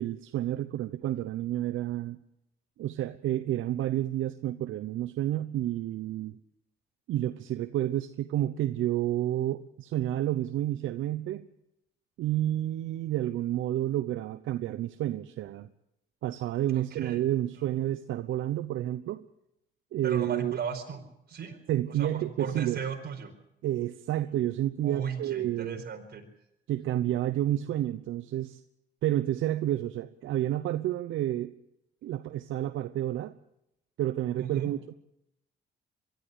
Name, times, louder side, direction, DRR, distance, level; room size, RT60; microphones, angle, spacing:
voice 1, 0.0-2.2 2.8-6.4 7.1-11.5 12.2-15.7 16.2-19.2 19.9-20.6 21.7-22.8 23.6-25.8 26.7-28.6 29.0-31.5 32.0-33.3 34.0-34.9, right 13 dB, 80° right, 11 dB, 0.9 m, -30 dB
voice 2, 16.7-17.2 17.6-17.7 20.0-21.0 21.3-21.6 21.9-22.1 22.4-23.3 24.8-26.2 34.4-34.7, right 6 dB, 55° right, 4 dB, 4.7 m, -36 dB
22.5 x 13.0 x 9.9 m, 0.81 s
cardioid pair, 90°, 20 cm